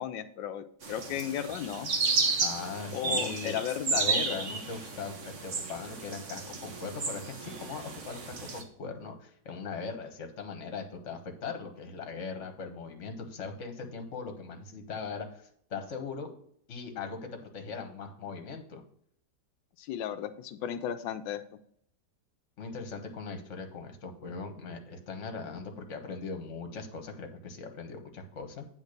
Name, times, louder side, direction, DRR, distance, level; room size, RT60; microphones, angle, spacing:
voice 1, 0.0-2.0 2.9-4.5 19.8-21.4, left 10 dB, 90° left, 8 dB, 1.3 m, -35 dB
sound 1, 0.8-8.6, right 4 dB, 50° right, 1.3 m, -32 dB
voice 2, 2.4-3.6 3.9-16.3 16.7-17.2 17.5-18.8 22.6-28.7, left 4 dB, 45° left, 5 dB, 1.4 m, -40 dB
8.4 x 3.7 x 6.5 m, 0.64 s
omnidirectional pair, 1.9 m